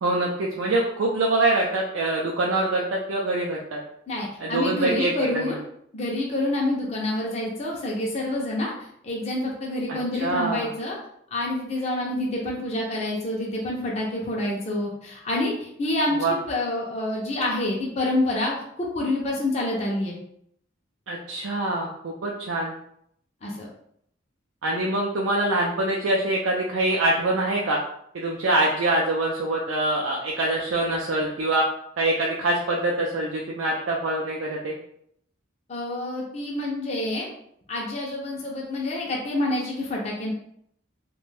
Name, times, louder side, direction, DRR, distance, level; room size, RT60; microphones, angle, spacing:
voice 1, 0.0-3.8 4.4-5.1 5.4-5.5 9.9-10.7 16.1-16.4 21.1-22.7 24.6-27.8 28.1-31.6 32.0-34.8, right 2 dB, 80° right, -2 dB, 0.4 m, -24 dB
voice 2, 4.1-5.6 5.9-11.0 11.3-20.2 23.4-23.7 35.7-37.3 37.7-40.3, left 1 dB, 35° left, -2 dB, 0.4 m, -27 dB
2.5 x 2.2 x 3.2 m, 0.71 s
head